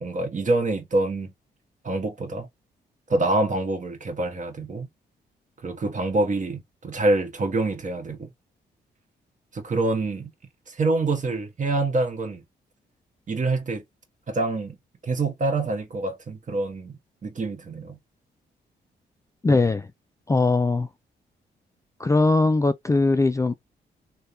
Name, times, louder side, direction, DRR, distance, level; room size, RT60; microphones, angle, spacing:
voice 1, 0.0-1.3 1.8-2.5 3.1-4.9 5.6-8.3 9.5-10.3 10.7-12.4 13.3-13.8 14.3-14.8 15.0-18.0, right 2 dB, 45° right, 1.2 m, -26 dB
voice 2, 19.4-19.9 20.3-20.9 22.0-23.5, left 3 dB, 15° left, 0.3 m, -20 dB
3.4 x 2.2 x 2.7 m
cardioid pair, 75°, 19 cm